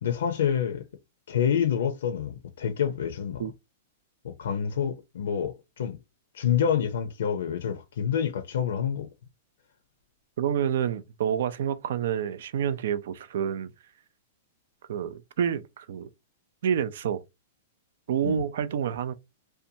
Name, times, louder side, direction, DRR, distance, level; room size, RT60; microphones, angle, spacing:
voice 1, 0.0-0.8 1.3-3.4 4.2-6.0 6.3-9.1 18.2-18.4, left 8 dB, 80° left, 0.5 m, -27 dB
voice 2, 10.4-13.7 14.9-16.1 16.6-17.2 18.1-19.1, right 8 dB, 70° right, 0.4 m, -28 dB
2.7 x 2.2 x 2.7 m
hypercardioid pair, 140°, 0 cm